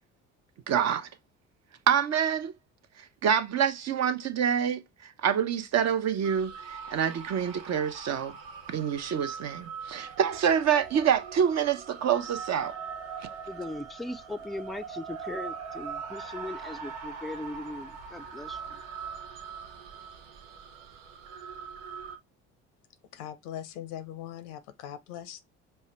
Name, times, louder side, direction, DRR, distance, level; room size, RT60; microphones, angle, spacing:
voice 1, 0.7-1.1 1.9-2.5 3.0-8.3 8.7-12.7, right 8 dB, 50° right, 0.7 m, -27 dB
sound 1, 6.2-22.2, right 6 dB, 85° right, 0.8 m, -41 dB
voice 2, 13.4-18.8, left 2 dB, ahead, 0.4 m, -39 dB
voice 3, 23.1-25.4, left 10 dB, 80° left, 0.7 m, -40 dB
5.4 x 2.2 x 3.0 m
hypercardioid pair, 60°, 35 cm